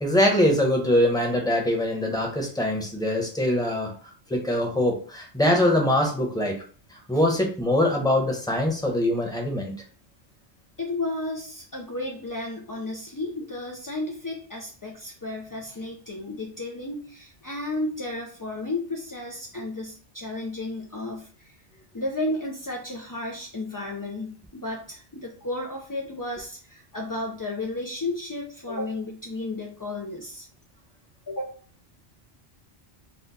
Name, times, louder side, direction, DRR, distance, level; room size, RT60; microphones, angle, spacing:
voice 1, 0.0-3.9 4.3-6.6 7.1-9.7, left 1 dB, 5° left, 0 dB, 0.9 m, -23 dB
voice 2, 10.8-21.6 21.9-30.5 31.3-31.6, left 2 dB, 30° left, -1 dB, 0.3 m, -33 dB
4.3 x 2.3 x 4.1 m, 0.40 s
omnidirectional pair, 1.1 m